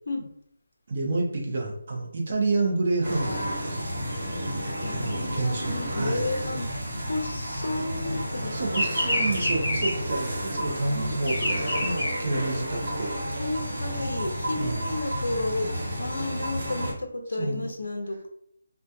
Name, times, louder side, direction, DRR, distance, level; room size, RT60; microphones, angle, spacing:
voice 1, 0.9-3.8 4.4-4.5 4.9-6.3 8.5-13.1 14.6-14.9 17.4-17.7, right 2 dB, 35° right, 0 dB, 0.5 m, -29 dB
sound 1, 3.0-16.9, equal, 55° right, 0.8 m, -31 dB
voice 2, 4.5-9.2 13.3-18.3, left 2 dB, 60° left, 3 dB, 0.5 m, -33 dB
Bird vocalization bird call bird song, 5.1-8.0 8.3-13.0, left 1 dB, 25° left, 0.7 m, -29 dB
2.7 x 2.1 x 2.2 m, 0.67 s
hypercardioid pair, 180°, 0 cm